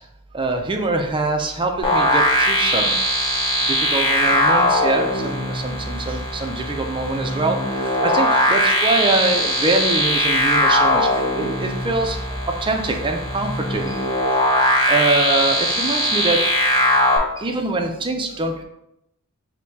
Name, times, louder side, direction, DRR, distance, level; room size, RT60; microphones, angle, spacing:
voice 1, 0.3-2.9 3.2-3.3 3.7-14.0 14.9-16.4 17.4-18.6, right 2 dB, 25° right, 4 dB, 0.4 m, -24 dB
sound 1, 1.8-17.2, left 1 dB, 25° left, 0.8 m, -20 dB
6.3 x 2.2 x 2.8 m, 0.84 s
head